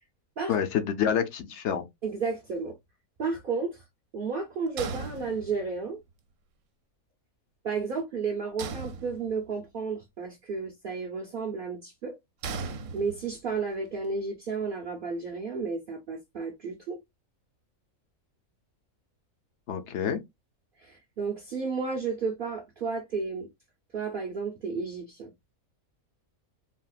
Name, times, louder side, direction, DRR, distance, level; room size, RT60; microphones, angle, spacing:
voice 1, 0.5-1.8 19.7-20.2, left 8 dB, 65° left, 0.8 m, -27 dB
voice 2, 2.0-2.8 3.2-3.8 4.1-6.0 7.6-12.2 12.6-17.0 20.8-23.5 23.9-25.3, right 4 dB, 50° right, 0.7 m, -32 dB
sound 1, 4.8-5.9 8.6-9.6 12.4-13.5, right 4 dB, 70° right, 1.0 m, -37 dB
3.5 x 2.3 x 2.3 m
omnidirectional pair, 1.5 m